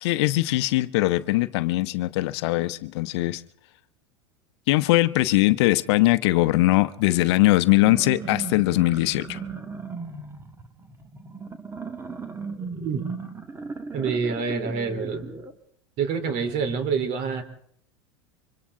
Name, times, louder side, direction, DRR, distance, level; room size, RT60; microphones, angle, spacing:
voice 1, 0.0-3.4 4.7-9.4, left 18 dB, 65° left, 0.9 m, -21 dB
sound 1, 7.7-15.5, right 4 dB, 15° right, 2.1 m, -36 dB
voice 2, 13.9-15.4 16.0-17.4, right 5 dB, 50° right, 3.7 m, -27 dB
28.5 x 25.0 x 3.8 m
hypercardioid pair, 105°, 15 cm